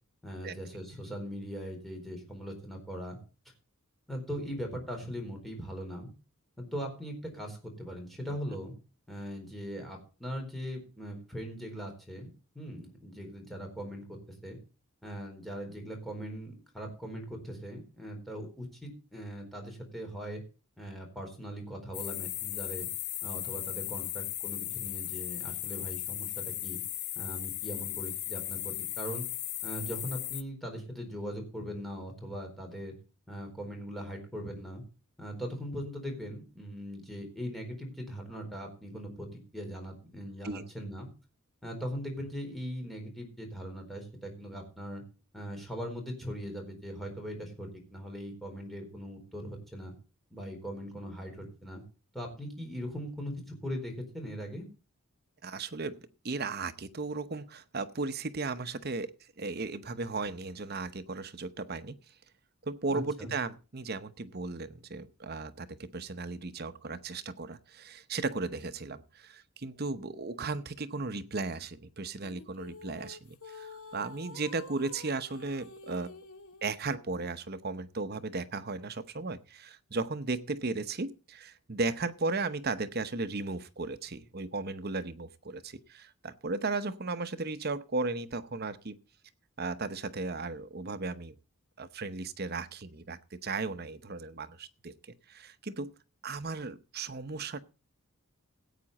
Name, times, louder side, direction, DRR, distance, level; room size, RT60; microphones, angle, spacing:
voice 1, 0.2-3.2 4.1-6.1 6.6-8.8 9.1-14.6 15.0-20.4 20.8-22.9 23.2-26.8 27.2-29.2 29.6-32.9 33.3-34.8 35.2-41.1 41.6-45.0 45.3-49.9 50.3-51.8 52.1-54.7 62.9-63.3, equal, ahead, 1 dB, 4.2 m, -40 dB
sound 1, 21.9-30.4, left 14 dB, 50° left, 0.7 m, -36 dB
voice 2, 55.4-56.0 56.2-62.0 62.6-76.1 76.6-89.0 89.6-91.3 91.8-95.9 96.2-97.6, right 3 dB, 45° right, 12 dB, 0.8 m, -36 dB
sound 2, 72.2-76.7, left 3 dB, 80° left, 2.0 m, -49 dB
16.5 x 8.8 x 4.1 m, 0.34 s
head